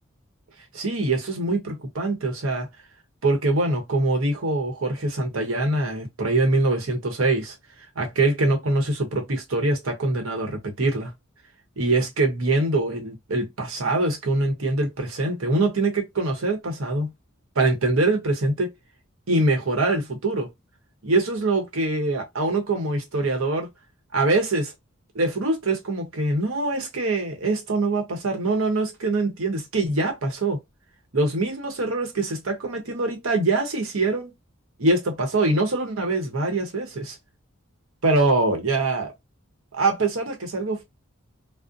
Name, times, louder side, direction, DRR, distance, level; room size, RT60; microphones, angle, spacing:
voice 1, 0.7-2.7 3.2-7.5 8.0-11.1 11.8-17.1 17.5-18.7 19.3-20.5 21.0-23.7 24.1-24.7 25.1-30.6 31.1-34.3 34.8-37.2 38.0-39.1 39.7-40.8, right 2 dB, 85° right, 0.9 m, -24 dB
2.6 x 2.0 x 2.5 m
head